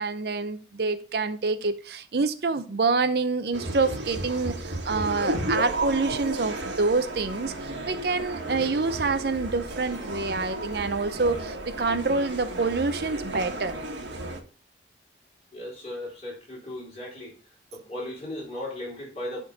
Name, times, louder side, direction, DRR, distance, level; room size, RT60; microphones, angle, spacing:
voice 1, 0.0-13.8, right 3 dB, 60° right, 0.6 m, -27 dB
sound 1, 3.5-14.4, right 1 dB, 85° right, 1.4 m, -33 dB
voice 2, 15.5-17.4 17.7-19.4, left 1 dB, 35° left, 4.4 m, -36 dB
11.0 x 3.8 x 4.0 m
head